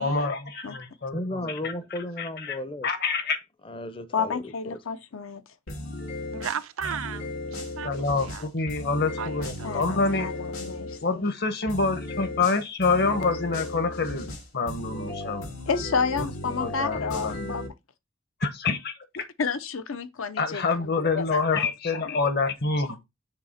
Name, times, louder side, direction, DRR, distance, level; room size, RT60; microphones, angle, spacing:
voice 1, 0.0-1.5 2.2-2.6 2.8-3.4 6.8-7.0 7.8-10.3 11.0-15.4 16.2-16.3 16.6-17.5 18.4-19.3 20.4-23.0, left 3 dB, 50° left, 1.0 m, -27 dB
voice 2, 1.1-2.9 3.6-4.8, left 1 dB, 25° left, 0.6 m, -34 dB
voice 3, 4.1-5.4 9.6-11.3 15.7-17.6 19.2-20.6 21.0-21.7 21.9-22.2, left 5 dB, 70° left, 0.6 m, -30 dB
sound 1, 5.7-11.0 11.7-17.7, left 2 dB, 90° left, 2.6 m, -35 dB
voice 4, 6.3-7.9 8.2-8.5 9.2-10.0, right 8 dB, 70° right, 0.4 m, -35 dB
6.9 x 2.8 x 5.6 m
head